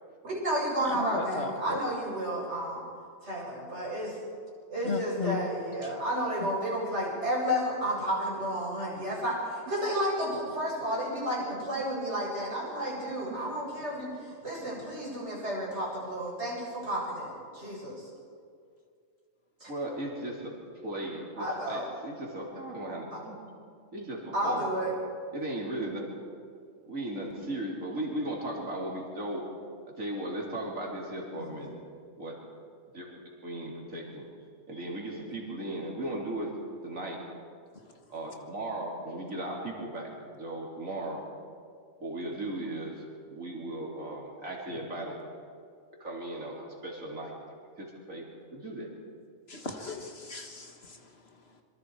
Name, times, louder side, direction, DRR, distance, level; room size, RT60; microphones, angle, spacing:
voice 1, 0.2-2.9 3.2-4.2 4.7-18.1 19.6-19.7 21.4-21.9 23.1-23.2 24.3-24.9 31.4-31.7, equal, 60° right, -5 dB, 7.7 m, -32 dB
voice 2, 1.0-1.8 4.8-5.4 49.5-50.7, left 4 dB, 50° left, 4 dB, 1.9 m, -35 dB
voice 3, 19.7-20.6 20.8-23.4 23.9-24.7 25.3-26.1 26.8-29.4 30.0-31.7 32.2-32.3 32.9-34.2 34.7-36.6 36.8-37.2 38.1-41.2 42.0-45.2 46.0-47.3 47.8-48.3 48.5-48.9, right 1 dB, 90° right, -2 dB, 3.8 m, -37 dB
26.0 x 24.0 x 4.8 m, 2.2 s
omnidirectional pair, 1.3 m